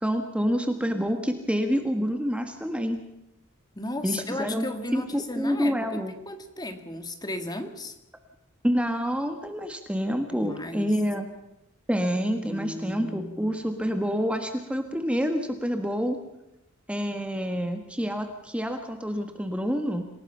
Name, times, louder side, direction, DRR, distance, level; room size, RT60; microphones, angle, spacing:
voice 1, 0.0-3.0 4.0-4.7 4.9-6.1 8.6-11.3 11.9-16.2 16.9-20.1, equal, 5° right, 6 dB, 1.5 m, -27 dB
voice 2, 3.8-8.0 10.3-11.0 12.4-13.5, left 1 dB, 20° left, 8 dB, 2.0 m, -35 dB
27.5 x 18.0 x 5.7 m, 0.89 s
head